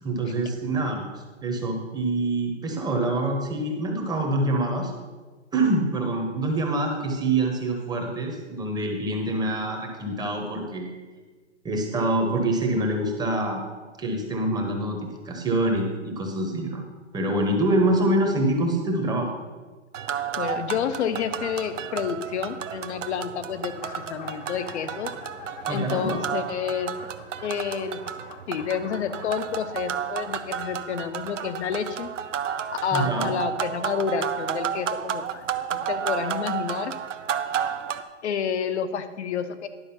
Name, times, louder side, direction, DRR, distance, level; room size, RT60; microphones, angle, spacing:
voice 1, 0.0-4.9 5.5-10.9 11.6-13.6 14.0-15.0 15.2-16.8 17.1-19.3 25.7-26.2 32.9-33.3, right 2 dB, 10° right, 2 dB, 1.1 m, -25 dB
sound 1, 19.9-38.0, right 8 dB, 85° right, 0.7 m, -32 dB
voice 2, 20.1-25.1 25.7-26.9 27.4-28.0 28.5-32.1 32.8-35.4 35.7-36.9 38.2-39.7, left 7 dB, 65° left, 11 dB, 0.9 m, -29 dB
sound 2, 23.8-29.9, left 7 dB, 40° left, 0.9 m, -46 dB
11.0 x 5.0 x 5.7 m, 1.4 s
hypercardioid pair, 130°, 36 cm